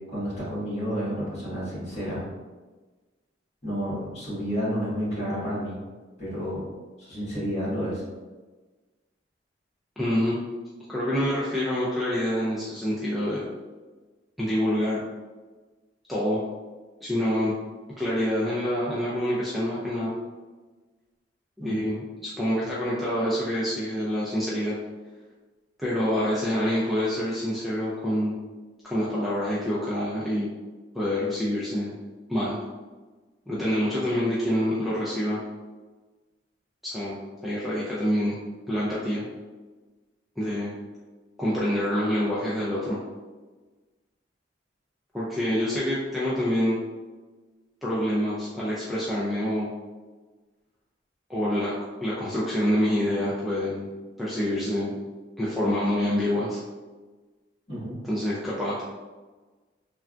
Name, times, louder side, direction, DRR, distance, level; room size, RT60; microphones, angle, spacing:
voice 1, 0.1-2.3 3.6-5.8 6.2-6.6 7.0-8.0 21.6-21.8 57.7-58.0, equal, 40° left, -9 dB, 1.5 m, -30 dB
voice 2, 10.0-10.4 10.9-13.4 14.4-15.0 16.1-16.4 17.0-17.5 18.0-20.1 21.6-24.7 25.8-28.3 28.8-30.5 30.9-31.9 32.3-32.6 33.5-35.4 36.8-37.2 37.4-38.4 38.7-39.2 40.4-40.7 41.4-43.0 45.1-46.8 47.8-49.7 51.3-51.7 52.0-53.9 54.2-55.0 55.4-56.6 58.0-58.8, equal, ahead, -8 dB, 0.4 m, -26 dB
3.3 x 2.3 x 2.4 m, 1.3 s
head